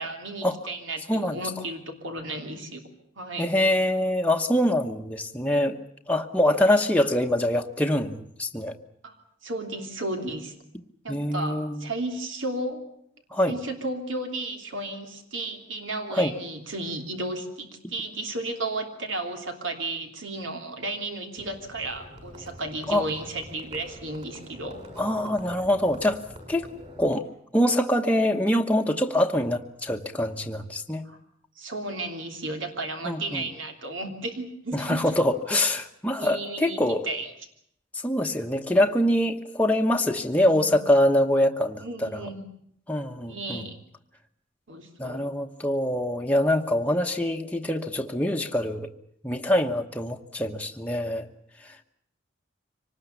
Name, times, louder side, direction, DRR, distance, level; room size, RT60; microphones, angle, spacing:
voice 1, 0.0-2.8 3.2-3.5 9.0-9.1 9.4-10.5 11.0-12.8 13.4-24.8 31.0-31.2 31.6-35.0 36.2-37.3 40.3-40.8 41.8-42.4 43.3-43.8 44.7-45.2, right 2 dB, 80° right, 4 dB, 3.2 m, -34 dB
voice 2, 3.4-5.8 6.1-8.7 11.1-11.8 13.3-13.6 16.1-16.3 22.9-23.1 25.0-26.2 26.5-26.7 27.0-27.2 27.5-31.0 33.0-33.4 34.7-37.1 37.9-42.2 42.9-43.6 45.0-48.9 49.2-51.3, left 1 dB, 5° left, 2 dB, 1.1 m, -24 dB
Livestock farm animals working animals, 21.4-27.1, equal, 35° right, 6.2 m, -45 dB
25.0 x 19.5 x 8.3 m, 0.70 s
head